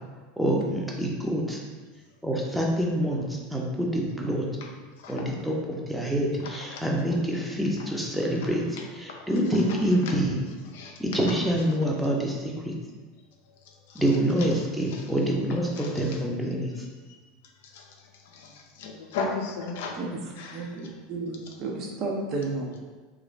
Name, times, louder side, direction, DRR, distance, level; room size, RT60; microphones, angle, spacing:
voice 1, 0.4-1.6 2.2-4.5 5.1-8.6 9.0-10.3 11.0-12.7 13.9-16.8, equal, 5° right, -2 dB, 0.6 m, -26 dB
voice 2, 6.4-6.8 7.8-7.9 8.4-8.9 9.2-9.3 9.5-9.8 10.0-10.1 10.6-11.3 11.7-11.8 13.4-14.0 14.4-15.1 15.7-16.2 16.7-16.8 17.0-17.2 17.4-20.0 20.4-20.6, left 4 dB, 65° left, 1 dB, 0.4 m, -38 dB
voice 3, 20.5-22.8, right 3 dB, 45° right, 0 dB, 0.6 m, -32 dB
3.1 x 2.5 x 3.0 m, 1.3 s
figure-of-eight pair, 80°, 0 cm